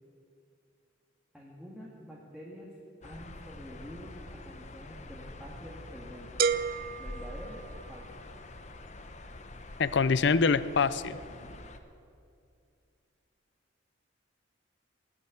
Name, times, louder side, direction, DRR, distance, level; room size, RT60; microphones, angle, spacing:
voice 1, 1.3-2.7 3.0-6.5 7.0-8.1 11.4-11.5, equal, ahead, -5 dB, 1.9 m, -47 dB
sound 1, 3.0-11.8, left 2 dB, 35° left, 0.8 m, -46 dB
sound 2, 6.4-8.3, right 6 dB, 45° right, 0.4 m, -32 dB
voice 2, 9.8-11.2, left 5 dB, 60° left, 16 dB, 0.5 m, -25 dB
17.0 x 8.9 x 9.1 m, 2.4 s
head